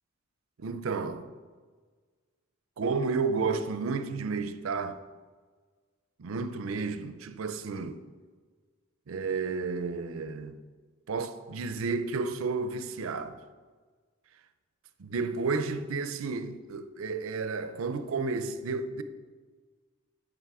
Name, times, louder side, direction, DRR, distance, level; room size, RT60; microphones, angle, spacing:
voice 1, 0.6-1.3 2.8-5.0 6.2-8.0 9.1-10.6 11.1-13.4 15.0-19.0, right 4 dB, 80° right, 0.5 m, -32 dB
8.1 x 5.3 x 4.8 m
head